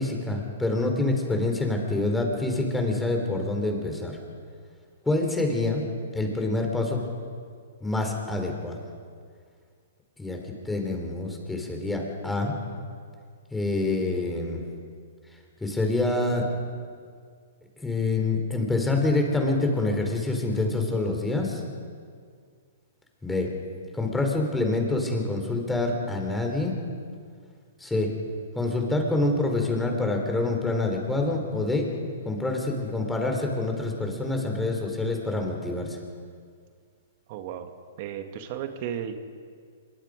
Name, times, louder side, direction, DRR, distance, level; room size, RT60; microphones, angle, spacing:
voice 1, 0.0-4.2 5.1-5.9 6.1-7.0 7.8-8.8 10.2-10.4 10.6-12.6 13.5-14.6 15.6-16.4 17.8-21.6 23.2-23.5 23.9-26.7 27.8-28.1 28.5-31.9 32.3-36.0, left 2 dB, 5° left, 2 dB, 4.1 m, -26 dB
voice 2, 37.3-37.7 38.0-39.2, right 9 dB, 45° right, 7 dB, 2.2 m, -34 dB
26.0 x 23.0 x 5.2 m, 2.1 s
hypercardioid pair, 130°, 0 cm